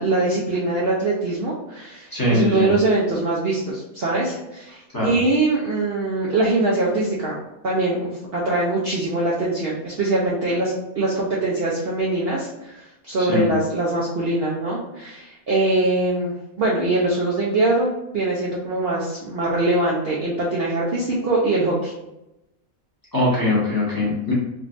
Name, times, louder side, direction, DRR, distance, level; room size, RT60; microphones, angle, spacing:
voice 1, 0.0-7.4 7.6-21.9, right 2 dB, 60° right, -5 dB, 0.6 m, -23 dB
voice 2, 2.1-2.7 4.9-5.2 13.2-13.5 23.1-24.3, left 1 dB, 20° left, -8 dB, 0.8 m, -21 dB
3.6 x 2.3 x 2.5 m, 0.91 s
omnidirectional pair, 1.5 m